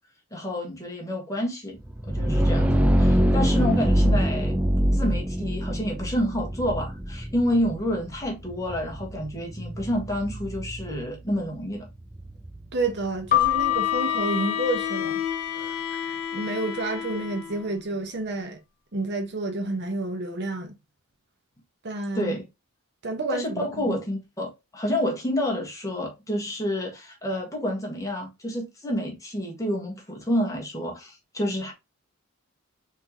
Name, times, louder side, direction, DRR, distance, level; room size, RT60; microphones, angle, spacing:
voice 1, 0.3-1.8 2.0-4.5 4.9-11.9 22.1-22.5 23.3-31.7, equal, 15° left, 1.4 m, -29 dB
sound 1, 1.8-13.5, equal, 5° right, 0.4 m, -25 dB
voice 2, 12.7-15.2 15.5-18.6 18.9-20.7 21.8-22.4 23.0-24.0, right 2 dB, 50° right, 0.9 m, -30 dB
Keyboard (musical), 13.3-15.8, left 13 dB, 35° left, 0.8 m, -26 dB
Bowed string instrument, 13.4-17.7, left 7 dB, 75° left, 1.0 m, -32 dB
4.3 x 3.7 x 2.9 m
head